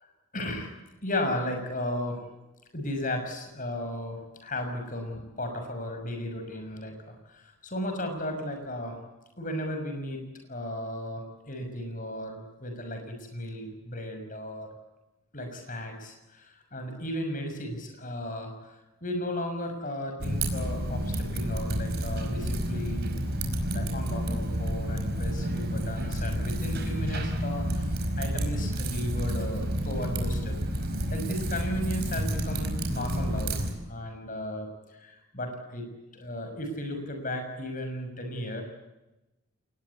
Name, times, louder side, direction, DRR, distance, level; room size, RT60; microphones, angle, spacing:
voice 1, 0.3-0.7 1.0-2.2 2.7-9.0 9.4-14.7 15.3-23.1 23.7-30.6 31.1-33.6 33.9-35.9 36.1-38.6, left 1 dB, 40° left, 5 dB, 6.2 m, -35 dB
Typing, 20.2-33.7, equal, 45° right, 5.0 m, -30 dB
28.5 x 20.5 x 8.4 m, 1.0 s
head